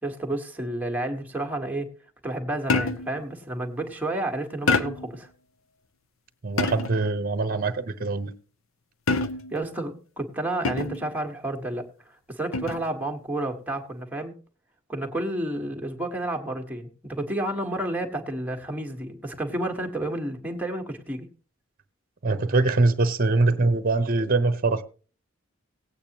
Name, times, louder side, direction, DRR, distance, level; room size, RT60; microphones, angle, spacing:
voice 1, 0.0-1.9 2.2-5.3 9.5-11.9 12.3-14.3 14.9-21.3, right 1 dB, 10° right, 1.5 m, -30 dB
sound 1, 2.7-3.2 4.7-5.2 6.6-7.1 9.1-9.6 10.6-11.1 12.5-12.9, left 3 dB, 70° left, 0.7 m, -26 dB
voice 2, 6.4-8.3 22.2-24.8, right 3 dB, 45° right, 0.9 m, -23 dB
18.0 x 8.6 x 3.0 m
head